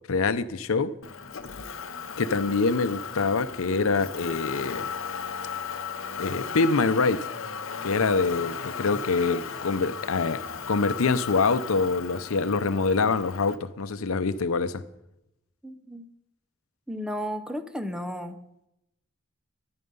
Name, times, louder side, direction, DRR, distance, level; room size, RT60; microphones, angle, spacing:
voice 1, 0.1-1.0 2.2-4.8 6.2-7.3 7.8-14.8, left 4 dB, 90° left, 0.6 m, -25 dB
Motor vehicle (road), 1.0-13.6, left 6 dB, 70° left, 0.9 m, -36 dB
voice 2, 15.6-16.0 16.9-18.4, equal, 5° right, 0.7 m, -33 dB
13.0 x 10.5 x 5.4 m
head